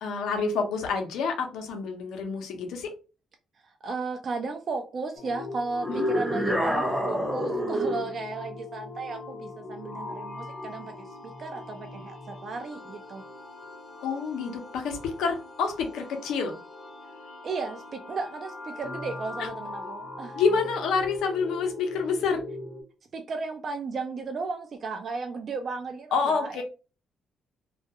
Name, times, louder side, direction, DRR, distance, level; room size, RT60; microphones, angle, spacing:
voice 1, 0.0-2.9 5.9-6.1 14.0-16.5 19.4-19.5 20.3-22.4 26.1-26.6, left 5 dB, 85° left, 4 dB, 0.6 m, -28 dB
voice 2, 3.6-13.2 17.4-20.4 23.1-26.6, right 4 dB, 50° right, 5 dB, 0.4 m, -35 dB
sound 1, 5.2-22.8, left 2 dB, 50° left, 0.7 m, -41 dB
sound 2, 5.8-8.1, equal, 10° right, 0.7 m, -27 dB
2.3 x 2.2 x 2.7 m, 0.32 s
cardioid pair, 90°, 0 cm